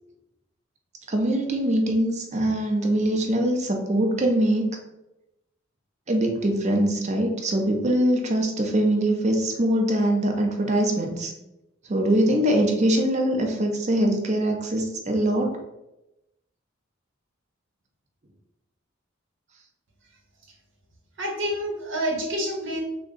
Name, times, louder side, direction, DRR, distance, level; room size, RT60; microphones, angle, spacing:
voice 1, 1.1-4.7 6.1-11.3 11.9-15.5, right 1 dB, 35° right, 3 dB, 0.5 m, -23 dB
voice 2, 21.2-22.8, equal, 65° right, 0 dB, 0.9 m, -28 dB
3.5 x 2.2 x 3.7 m, 0.91 s
head